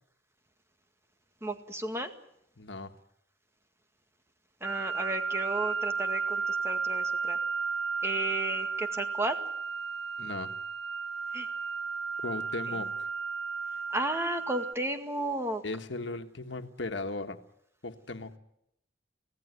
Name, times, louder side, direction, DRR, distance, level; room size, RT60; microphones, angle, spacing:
voice 1, 1.4-2.1 4.6-7.4 8.0-9.4 11.3-11.5 13.9-15.6, right 1 dB, 15° right, 6 dB, 2.0 m, -33 dB
voice 2, 2.6-2.9 10.2-10.5 12.2-13.1 15.6-17.4 17.8-18.4, left 2 dB, 85° left, 7 dB, 1.5 m, -37 dB
sound 1, 4.6-14.7, right 5 dB, 70° right, 1.8 m, -33 dB
25.5 x 17.0 x 9.5 m, 0.78 s
head